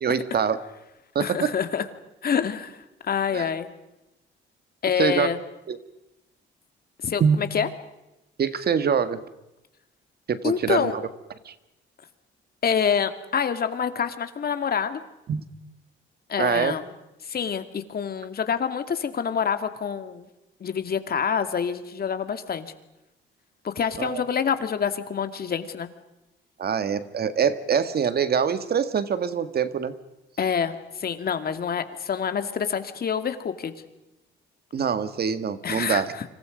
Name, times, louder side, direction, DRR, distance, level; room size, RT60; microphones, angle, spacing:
voice 1, 0.0-0.6 1.2-1.5 3.3-3.5 5.0-5.3 5.7-5.8 7.2-7.4 8.4-9.2 10.3-11.0 11.5-11.6 15.3-15.4 16.4-16.7 24.0-24.2 26.6-29.9 34.7-36.1, right 7 dB, 50° right, 11 dB, 1.8 m, -24 dB
voice 2, 1.2-1.8 2.2-2.8 3.0-3.7 4.8-5.4 7.0-7.7 10.4-10.9 12.6-15.0 16.3-16.9 17.2-20.3 20.6-22.7 23.6-25.9 30.4-33.7 35.6-36.2, left 7 dB, 50° left, 9 dB, 2.3 m, -26 dB
29.5 x 26.0 x 5.3 m, 0.94 s
cardioid pair, 90°, 20 cm